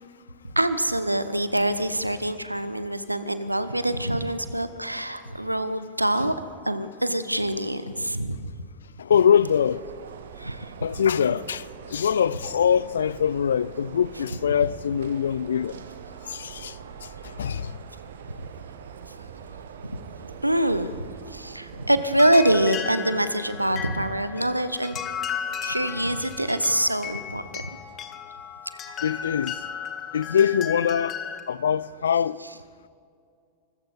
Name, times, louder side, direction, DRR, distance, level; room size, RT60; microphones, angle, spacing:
voice 1, 0.5-6.3 6.7-8.5 10.4-10.7 19.8-20.0 20.4-20.9 21.3-25.0 25.6-27.7, right 1 dB, 85° right, 0.8 m, -25 dB
voice 2, 9.0-9.8 10.8-15.8 16.3-16.8 17.0-17.1 17.4-17.7 29.0-29.6 30.1-31.2 31.5-32.4, left 8 dB, 65° left, 0.4 m, -23 dB
sound 1, 9.2-22.1, right 7 dB, 60° right, 1.0 m, -43 dB
sound 2, 22.1-31.4, left 7 dB, 30° left, 1.3 m, -35 dB
24.5 x 14.5 x 4.2 m
figure-of-eight pair, 90°, 0 cm